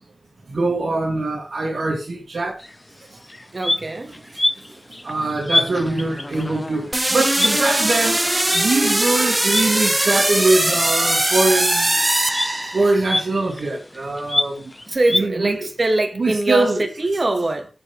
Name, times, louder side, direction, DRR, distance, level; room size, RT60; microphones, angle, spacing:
voice 1, 0.5-2.6 3.1-3.2 4.2-4.4 5.0-12.0 12.7-14.6 15.1-15.6 16.2-16.9, right 2 dB, 70° right, 2.8 m, -22 dB
sound 1, 2.6-2.8 3.2-10.6 10.9-15.3, left 1 dB, 25° left, 0.5 m, -27 dB
voice 2, 3.5-4.1 14.9-17.7, right 2 dB, 45° right, 2.4 m, -22 dB
sound 2, 6.9-13.1, right 1 dB, 20° right, 1.0 m, -20 dB
14.0 x 5.4 x 3.4 m
wide cardioid pair, 80°, 0 cm